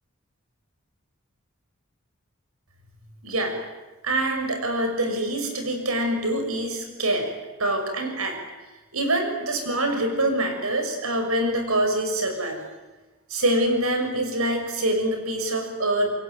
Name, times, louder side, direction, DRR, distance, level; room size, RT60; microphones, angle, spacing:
voice 1, 3.2-3.6 4.0-7.3 7.6-8.4 8.9-12.7 13.3-16.1, right 1 dB, 85° right, 5 dB, 6.4 m, -25 dB
27.0 x 22.0 x 9.3 m, 1.1 s
head